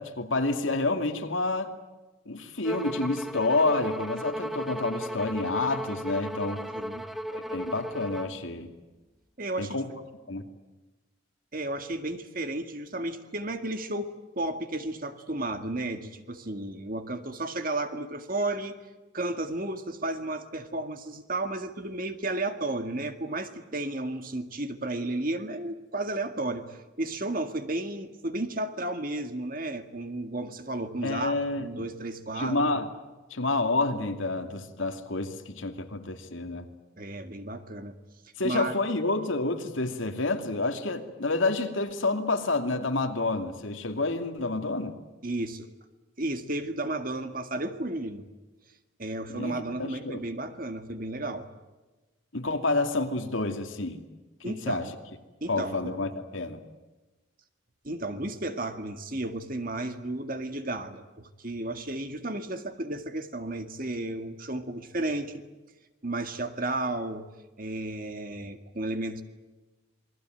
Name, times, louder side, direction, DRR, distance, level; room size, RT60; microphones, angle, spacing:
voice 1, 0.0-1.7 2.3-6.6 7.3-8.7 9.6-9.9 10.3-10.5 31.0-31.9 32.4-32.9 33.3-36.7 38.4-45.0 49.3-50.2 52.3-54.0 54.4-54.9 55.5-56.6, left 2 dB, 75° left, 6 dB, 2.6 m, -29 dB
Bowed string instrument, 2.6-8.4, equal, ahead, 0.8 m, -35 dB
voice 2, 6.7-7.1 9.4-9.8 11.5-18.8 19.1-32.7 37.0-38.0 38.4-38.8 45.2-45.7 46.2-48.3 49.0-51.5 54.4-54.9 55.4-55.9 57.8-65.4 66.0-67.3 67.6-69.2, right 2 dB, 45° right, 8 dB, 2.0 m, -33 dB
27.5 x 21.5 x 9.2 m, 1.2 s
head